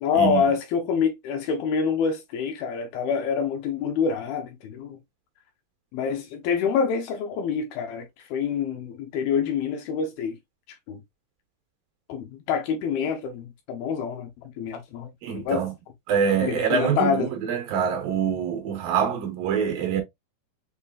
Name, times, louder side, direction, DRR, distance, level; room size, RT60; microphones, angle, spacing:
voice 1, 0.0-5.0 5.9-10.4 10.9-11.0 12.1-14.3 14.6-15.6 16.4-17.3, left 6 dB, 75° left, 2.4 m, -26 dB
voice 2, 15.2-15.7 16.1-20.0, right 7 dB, 75° right, 2.4 m, -25 dB
6.8 x 2.6 x 2.4 m
omnidirectional pair, 4.7 m